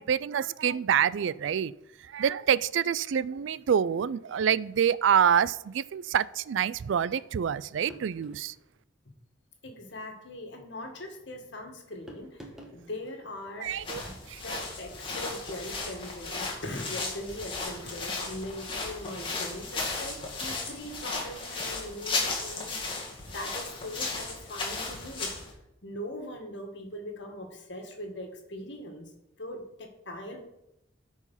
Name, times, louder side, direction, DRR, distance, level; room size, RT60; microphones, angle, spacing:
voice 1, 0.0-1.7 2.1-8.5 13.6-14.0, right 8 dB, 70° right, 19 dB, 0.3 m, -26 dB
sound 1, 7.9-8.5 9.8-10.1 12.1-12.8, right 1 dB, 5° right, 1.5 m, -48 dB
voice 2, 9.6-12.4 12.7-13.7 14.0-14.2 14.4-25.3 25.8-29.1 29.4-30.4, left 1 dB, 60° left, 3 dB, 1.9 m, -41 dB
sound 2, 13.7-25.5, left 3 dB, 25° left, 2.0 m, -35 dB
13.0 x 4.8 x 5.6 m, 0.86 s
head